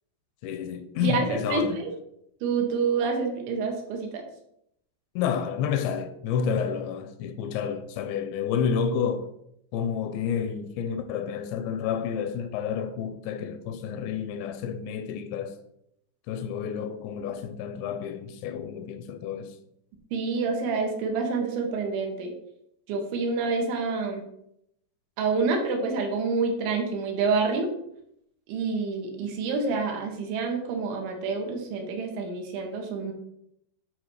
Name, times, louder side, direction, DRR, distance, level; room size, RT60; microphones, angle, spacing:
voice 1, 0.4-1.8 5.2-9.3 9.7-15.6 16.3-19.6, left 7 dB, 85° left, 2.8 m, -30 dB
voice 2, 1.0-1.9 2.4-4.2 20.1-22.3 22.9-24.2 25.2-27.7 28.5-33.1, right 4 dB, 80° right, 3.9 m, -27 dB
11.0 x 4.0 x 6.4 m
omnidirectional pair, 5.3 m